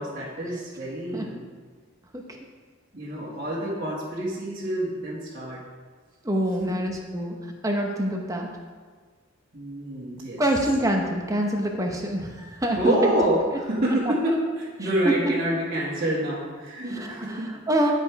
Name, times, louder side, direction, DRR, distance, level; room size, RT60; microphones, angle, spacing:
voice 1, 0.0-1.4 2.9-5.6 6.6-6.7 9.5-10.4 12.8-17.5, right 1 dB, 40° right, -11 dB, 2.0 m, -27 dB
voice 2, 6.2-8.5 10.4-13.1 15.0-15.3 16.9-17.9, right 1 dB, 15° right, 1 dB, 0.9 m, -26 dB
10.5 x 5.4 x 4.7 m, 1.5 s
head